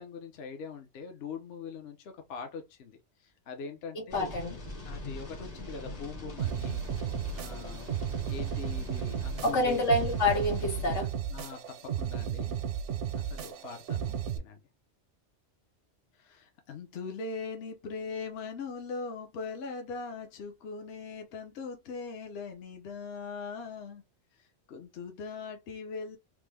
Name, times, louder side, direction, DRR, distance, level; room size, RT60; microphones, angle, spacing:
voice 1, 0.0-4.3 4.8-7.9 8.3-9.9 11.3-12.6 13.1-14.6 16.2-24.0 24.4-26.2, left 4 dB, 65° left, 0.9 m, -41 dB
voice 2, 3.9-4.6 9.4-11.1, left 1 dB, 90° left, 1.6 m, -27 dB
sound 1, 4.1-11.0, left 1 dB, 40° left, 0.8 m, -42 dB
sound 2, 6.4-14.4, right 8 dB, 80° right, 0.9 m, -34 dB
3.2 x 2.0 x 3.3 m
omnidirectional pair, 1.2 m